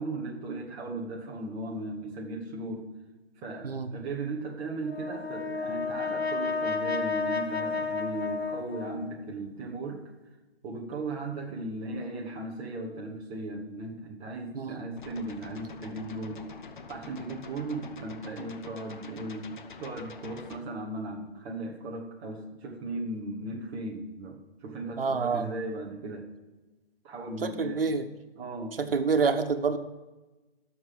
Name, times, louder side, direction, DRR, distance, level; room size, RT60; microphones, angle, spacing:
voice 1, 0.0-2.9 3.4-10.1 10.6-16.4 16.9-26.3 27.0-27.8 28.4-28.8, right 2 dB, 10° right, -1 dB, 0.7 m, -37 dB
Brass instrument, 4.8-9.3, left 4 dB, 80° left, 1.4 m, -32 dB
voice 2, 14.5-14.9 25.0-25.5 27.4-28.1 28.8-29.8, right 5 dB, 65° right, 8 dB, 1.2 m, -27 dB
sound 1, 15.0-20.6, left 5 dB, 50° left, 1.0 m, -46 dB
10.5 x 6.8 x 7.5 m, 1.1 s
figure-of-eight pair, 140°, 31 cm